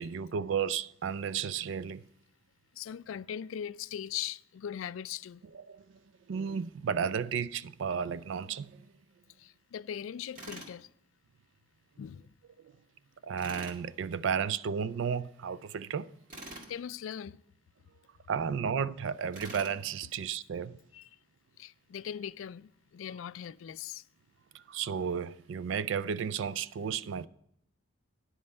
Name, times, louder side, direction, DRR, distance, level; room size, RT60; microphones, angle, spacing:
voice 1, 0.0-2.0 5.5-5.8 6.3-8.9 13.2-16.1 18.3-20.8 24.5-27.3, right 7 dB, 70° right, 0.3 m, -33 dB
voice 2, 2.8-5.4 9.4-10.9 12.0-12.2 16.7-17.4 20.9-21.1 21.6-24.0, left 9 dB, 80° left, 0.3 m, -40 dB
Tools, 10.3-10.8 13.4-13.8 16.3-16.7 19.3-19.8, right 1 dB, 40° right, 1.8 m, -45 dB
10.0 x 5.4 x 7.9 m
head